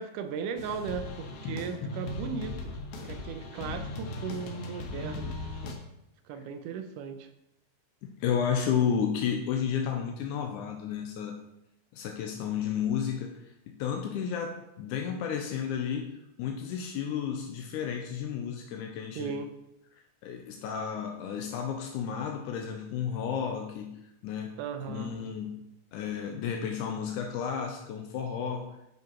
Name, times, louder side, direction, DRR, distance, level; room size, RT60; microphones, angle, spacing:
voice 1, 0.0-2.8 3.0-5.4 6.3-7.3 19.2-19.5 24.6-25.2, right 6 dB, 85° right, 8 dB, 2.3 m, -37 dB
sound 1, 0.6-5.7, left 2 dB, 60° left, 1.8 m, -38 dB
voice 2, 8.0-11.4 11.9-19.4 20.2-24.0 24.2-24.6 24.9-25.6 25.9-28.7, left 7 dB, 80° left, 3 dB, 2.1 m, -32 dB
9.5 x 5.4 x 4.5 m, 0.85 s
omnidirectional pair, 3.6 m